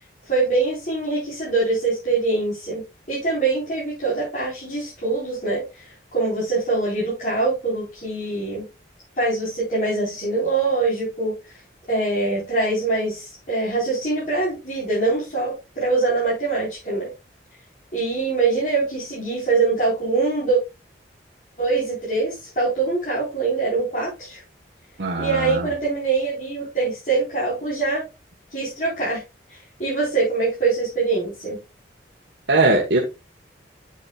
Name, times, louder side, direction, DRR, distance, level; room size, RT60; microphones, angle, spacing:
voice 1, 0.2-8.7 9.2-11.6 11.9-17.1 17.9-20.6 21.6-24.4 25.2-28.0 28.5-29.2 29.5-31.6, right 3 dB, 45° left, -8 dB, 4.3 m, -23 dB
voice 2, 25.0-25.7 32.5-33.0, right 2 dB, 80° right, 0 dB, 1.4 m, -20 dB
8.6 x 8.0 x 2.3 m, 0.27 s
head